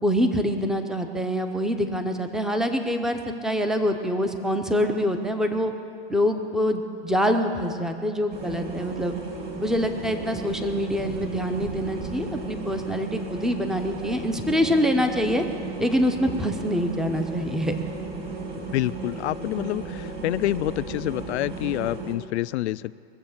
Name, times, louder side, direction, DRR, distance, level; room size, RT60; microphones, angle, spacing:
voice 1, 0.0-5.7 6.1-9.1 9.6-15.4 15.8-17.7, equal, ahead, 6 dB, 0.7 m, -25 dB
sound 1, 8.3-22.2, right 3 dB, 30° right, 2.3 m, -35 dB
voice 2, 18.7-22.9, left 15 dB, 80° left, 16 dB, 0.5 m, -27 dB
21.5 x 7.5 x 7.2 m, 2.5 s
supercardioid pair, 135°, 33 cm